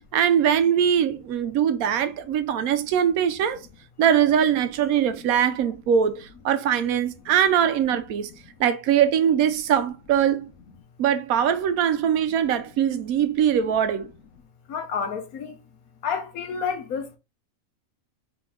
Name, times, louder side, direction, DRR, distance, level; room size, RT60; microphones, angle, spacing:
voice 1, 0.1-3.6 4.0-8.3 8.6-10.5 11.0-14.1, right 9 dB, 85° right, 1.1 m, -22 dB
voice 2, 14.7-15.6 16.0-17.2, left 6 dB, 85° left, 1.4 m, -29 dB
3.9 x 3.4 x 3.8 m
omnidirectional pair, 1.5 m